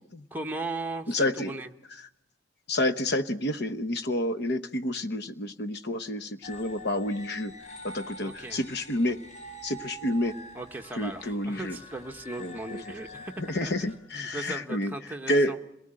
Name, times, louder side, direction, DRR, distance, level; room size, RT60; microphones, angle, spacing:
voice 1, 0.3-1.7 8.2-8.6 10.5-13.7 14.1-15.6, right 2 dB, 10° right, 3 dB, 1.2 m, -37 dB
voice 2, 1.1-1.5 2.0-2.1 2.7-7.5 7.8-9.2 9.6-10.4 11.0-11.8 12.4-12.8 13.4-15.0 15.3-15.6, left 1 dB, 55° left, 10 dB, 1.0 m, -29 dB
sound 1, 6.4-14.0, equal, 35° left, 5.8 m, -46 dB
27.0 x 19.0 x 8.9 m, 0.83 s
head